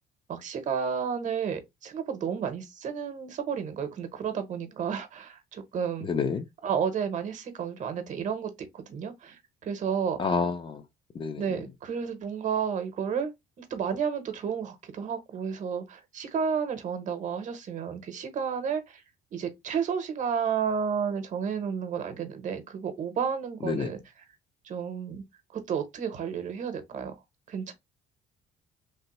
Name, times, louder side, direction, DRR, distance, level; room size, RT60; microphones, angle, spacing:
voice 1, 0.3-6.1 6.6-10.4 11.4-13.3 13.6-19.0 19.3-24.0 24.6-25.2 25.5-27.2 27.5-27.7, right 7 dB, 45° right, 0.7 m, -31 dB
voice 2, 6.0-6.4 10.2-10.8 11.1-11.4 23.6-23.9, left 5 dB, 30° left, 0.4 m, -28 dB
3.2 x 2.0 x 2.9 m
cardioid pair, 110°, 17 cm